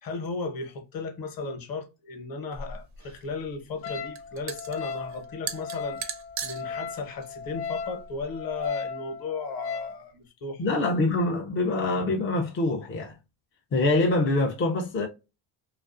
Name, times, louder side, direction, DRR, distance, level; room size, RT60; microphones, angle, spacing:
voice 1, 0.0-6.0 6.4-10.6, left 4 dB, 45° left, 0.8 m, -35 dB
sound 1, 2.5-8.7, right 6 dB, 40° right, 0.4 m, -40 dB
Wind instrument woodwind instrument, 3.8-10.0, left 6 dB, 85° left, 0.8 m, -36 dB
voice 2, 10.6-13.2 13.7-15.1, left 2 dB, 30° left, 0.3 m, -25 dB
2.4 x 2.3 x 2.4 m
cardioid pair, 115°, 49 cm